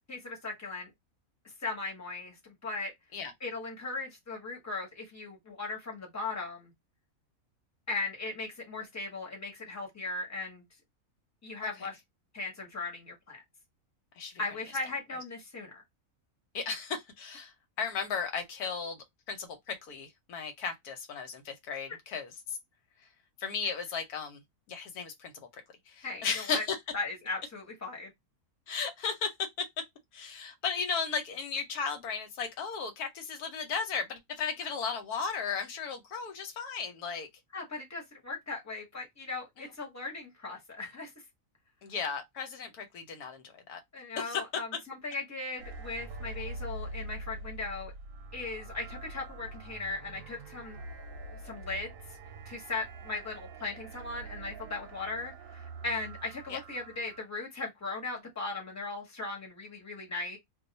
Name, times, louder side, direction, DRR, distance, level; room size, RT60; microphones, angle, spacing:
voice 1, 0.1-0.9 1.6-2.9 3.4-6.7 7.9-10.6 11.4-12.0 12.3-13.4 14.4-15.8 26.0-26.6 26.9-28.1 37.5-41.1 43.9-47.9 48.3-50.8 51.4-51.9 52.4-60.4, left 3 dB, 10° left, 1.0 m, -38 dB
voice 2, 16.5-22.6 23.4-24.4 24.7-26.8 28.7-29.7 30.1-37.3 39.6-39.7 41.8-43.8 44.2-44.4 56.5-56.6, left 5 dB, 85° left, 1.3 m, -35 dB
sound 1, 45.6-57.2, right 2 dB, 65° right, 0.9 m, -44 dB
2.5 x 2.3 x 4.0 m
omnidirectional pair, 1.6 m